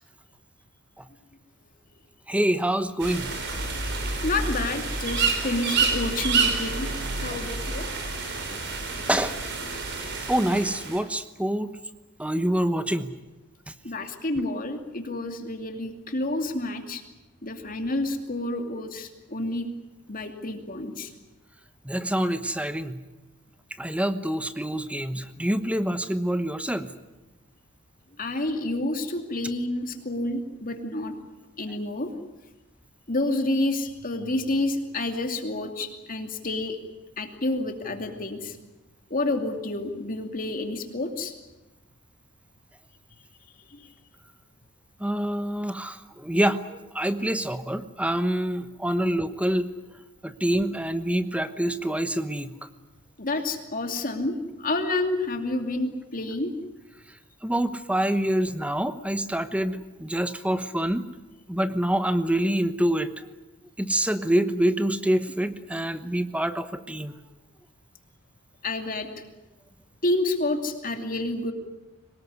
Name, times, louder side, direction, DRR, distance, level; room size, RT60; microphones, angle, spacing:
voice 1, 2.3-3.3 7.3-7.4 8.5-8.6 9.1-9.4 10.3-11.8 12.2-13.1 21.8-23.0 23.8-26.9 45.0-49.7 50.2-52.7 57.4-61.0 61.5-63.1 63.8-67.1, right 1 dB, 5° right, 11 dB, 1.0 m, -26 dB
sound 1, 3.0-11.0, right 4 dB, 55° right, 4.4 m, -28 dB
voice 2, 4.2-6.9 7.2-7.9 13.8-17.0 17.4-19.7 20.1-21.1 28.2-31.1 31.6-32.1 33.1-36.8 37.2-38.6 39.1-41.3 43.7-43.8 53.2-56.5 68.6-69.1 70.0-71.5, left 2 dB, 40° left, 5 dB, 2.7 m, -29 dB
23.0 x 20.0 x 9.6 m, 1.1 s
head